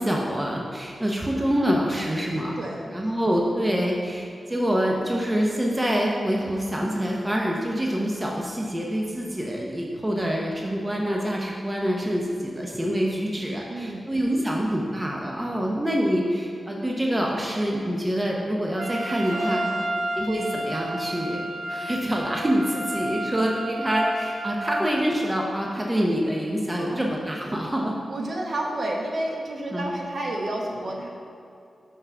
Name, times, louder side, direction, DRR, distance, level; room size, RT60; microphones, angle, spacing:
voice 1, 0.0-2.5 2.9-19.6 20.2-27.9 29.7-29.9, equal, 15° right, -2 dB, 0.7 m, -26 dB
voice 2, 2.6-2.9 13.7-14.2 19.3-19.9 22.2-22.3 26.8-27.1 28.1-31.1, right 1 dB, 55° right, -1 dB, 1.0 m, -31 dB
Trumpet, 18.8-24.8, right 1 dB, 70° right, 0.7 m, -30 dB
5.7 x 4.7 x 5.8 m, 2.5 s
wide cardioid pair, 140°, 0 cm